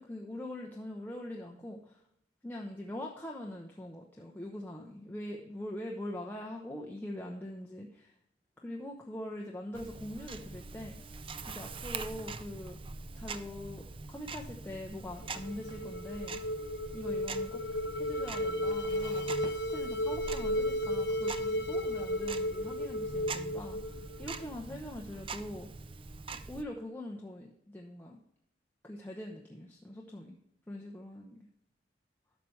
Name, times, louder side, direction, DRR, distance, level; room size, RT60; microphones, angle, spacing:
voice 1, 0.0-2.0 2.4-8.1 8.6-11.0 11.5-12.8 13.2-16.4 16.9-17.6 17.9-25.7 26.5-28.2 28.8-30.4 30.7-31.5, left 1 dB, 10° left, -1 dB, 0.8 m, -43 dB
Tick-tock, 9.7-26.6, right 4 dB, 30° right, 0.4 m, -44 dB
sound 1, 15.2-24.4, left 1 dB, 75° left, 0.9 m, -34 dB
11.5 x 6.8 x 3.2 m, 0.74 s
head